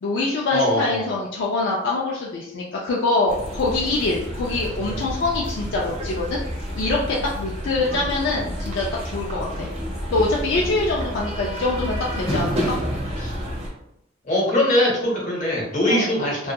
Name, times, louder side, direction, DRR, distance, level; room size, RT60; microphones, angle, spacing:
voice 1, 0.0-6.4 6.7-9.7 10.1-12.7 15.9-16.1, left 2 dB, 65° left, -3 dB, 0.4 m, -24 dB
voice 2, 0.5-1.1 13.2-13.3 14.2-16.5, left 1 dB, 40° left, -3 dB, 0.8 m, -21 dB
sound 1, 3.3-13.7, equal, 35° right, 0.7 m, -29 dB
2.7 x 2.3 x 2.2 m, 0.83 s
head